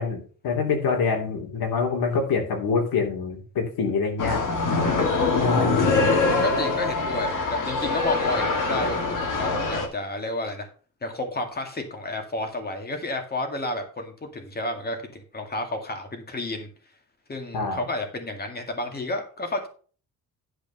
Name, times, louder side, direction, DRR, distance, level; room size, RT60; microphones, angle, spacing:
voice 1, 0.0-4.4 5.4-5.7 17.5-17.8, left 5 dB, 90° left, 0 dB, 3.0 m, -25 dB
sound 1, 4.2-9.9, left 3 dB, 60° left, 2.1 m, -23 dB
voice 2, 5.1-5.6 6.3-10.7 11.0-16.7 17.3-19.7, left 2 dB, 25° left, 4 dB, 2.1 m, -31 dB
11.0 x 5.1 x 5.5 m, 0.40 s
wide cardioid pair, 170°, 36 cm